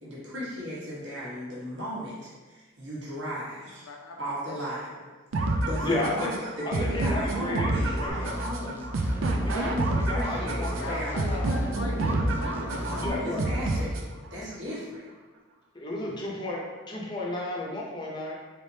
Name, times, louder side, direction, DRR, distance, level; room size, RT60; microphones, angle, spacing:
voice 1, 0.0-3.8 4.2-4.9 5.4-11.3 12.8-14.0 14.3-15.0, equal, 60° right, -8 dB, 1.3 m, -36 dB
voice 2, 3.8-4.8 10.7-13.9, left 2 dB, 75° left, 1 dB, 0.5 m, -41 dB
sound 1, 5.3-14.3, right 2 dB, 75° right, 0.4 m, -29 dB
voice 3, 5.8-6.3 6.8-8.4 9.4-11.5 13.0-13.4 15.7-16.6 16.9-18.3, left 2 dB, 20° left, -4 dB, 0.6 m, -33 dB
sound 2, 8.1-13.1, equal, 10° right, 0.3 m, -35 dB
4.2 x 3.4 x 2.7 m, 1.3 s
head